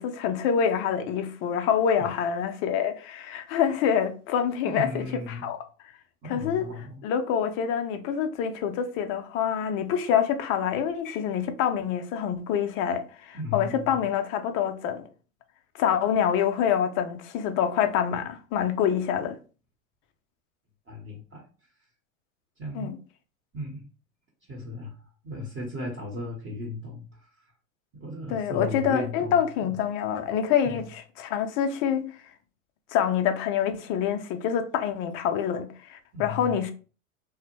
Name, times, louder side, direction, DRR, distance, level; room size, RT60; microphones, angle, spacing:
voice 1, 0.0-5.6 6.3-6.7 7.0-15.0 15.8-19.4 22.7-23.0 28.3-32.1 32.9-36.7, left 8 dB, 35° left, 0.4 m, -26 dB
voice 2, 4.6-5.5 6.2-7.0 13.3-14.0 20.9-21.5 22.6-22.9 23.5-23.8 24.5-27.3 27.9-29.4 30.6-30.8 36.1-36.6, left 1 dB, 30° right, 0.9 m, -36 dB
2.7 x 2.0 x 2.9 m
hypercardioid pair, 95°, 41 cm